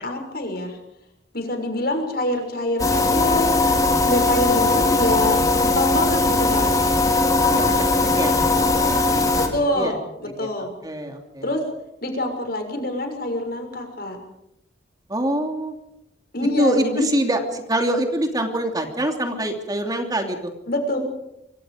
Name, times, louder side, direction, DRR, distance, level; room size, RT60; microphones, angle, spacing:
voice 1, 0.0-0.8 1.3-3.6 4.0-6.7 9.4-10.7 11.4-11.6 12.0-14.2 16.3-17.1 20.7-21.0, left 1 dB, 55° left, 4 dB, 6.6 m, -25 dB
sound 1, 2.8-9.5, left 3 dB, 20° left, 4.0 m, -19 dB
voice 2, 7.3-9.9 10.4-10.5 10.8-11.5 15.1-15.7 16.6-20.5, right 1 dB, 20° right, 4 dB, 2.9 m, -25 dB
25.5 x 25.5 x 5.1 m, 0.84 s
head